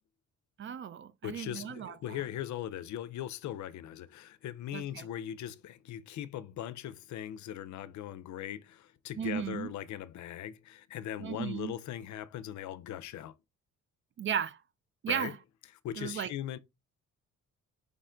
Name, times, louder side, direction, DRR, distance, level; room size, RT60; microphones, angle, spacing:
voice 1, 0.6-2.2 4.7-5.1 9.2-9.7 11.2-11.7 14.2-14.6 15.0-15.3 16.0-16.3, right 8 dB, 40° right, 0.4 m, -35 dB
voice 2, 1.2-13.3 15.1-15.3 15.8-16.6, left 11 dB, 70° left, 0.5 m, -40 dB
5.0 x 2.1 x 3.7 m
cardioid pair, 90°, 30 cm